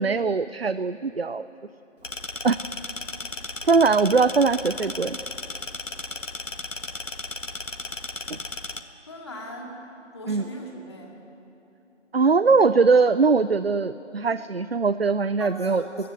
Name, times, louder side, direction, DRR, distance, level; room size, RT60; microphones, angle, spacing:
voice 1, 0.0-1.5 2.4-2.6 3.6-5.2 8.3-8.4 10.3-10.4 12.1-15.8, right 4 dB, 55° right, 15 dB, 0.5 m, -21 dB
sound 1, 2.0-8.8, left 2 dB, 85° left, 1.5 m, -35 dB
voice 2, 9.1-9.8 10.1-11.2 15.4-16.1, equal, 20° left, -1 dB, 2.2 m, -39 dB
28.5 x 15.5 x 7.9 m, 2.9 s
figure-of-eight pair, 165°, 37 cm